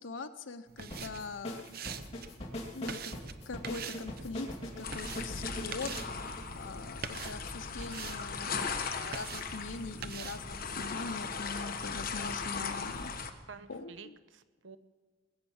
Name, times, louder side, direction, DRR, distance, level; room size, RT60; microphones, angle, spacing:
voice 1, 0.0-1.7 2.7-3.1 3.5-4.5 4.8-6.0 6.5-13.1 13.7-14.2, left 4 dB, 90° left, 8 dB, 0.8 m, -42 dB
sound 1, 0.7-13.3, right 7 dB, 55° right, 0.8 m, -47 dB
sound 2, 0.9-7.2, left 1 dB, 30° left, 2.6 m, -42 dB
sound 3, 4.8-13.3, left 5 dB, 50° left, 1.2 m, -38 dB
voice 2, 13.5-14.8, right 5 dB, 90° right, 12 dB, 0.9 m, -50 dB
20.5 x 8.9 x 7.1 m, 1.4 s
head